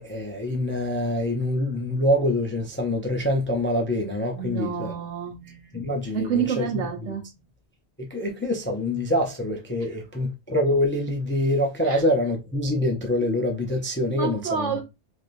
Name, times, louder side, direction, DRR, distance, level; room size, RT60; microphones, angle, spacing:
voice 1, 0.0-4.9 5.4-6.8 8.0-14.8, left 1 dB, 20° left, 0.3 m, -25 dB
voice 2, 4.4-5.4 6.1-7.2 11.8-12.0 14.1-14.8, right 7 dB, 90° right, 1.2 m, -28 dB
3.4 x 2.6 x 2.5 m
omnidirectional pair, 1.2 m